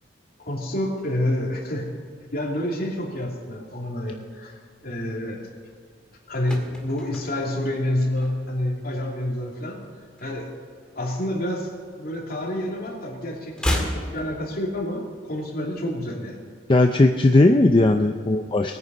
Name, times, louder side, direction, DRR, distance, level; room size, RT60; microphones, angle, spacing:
voice 1, 0.4-1.9 2.3-4.6 4.8-5.4 6.3-9.8 10.2-10.5 10.9-11.7 12.0-16.4, left 1 dB, 55° left, -2 dB, 2.9 m, -28 dB
sound 1, 6.1-8.8 9.0-9.3 9.6-11.1 11.4-12.7 13.0-15.1 15.3-15.4, equal, 5° left, 1.9 m, -32 dB
voice 2, 16.7-18.8, left 2 dB, 25° left, 5 dB, 0.5 m, -17 dB
19.5 x 9.4 x 5.4 m, 2.1 s
head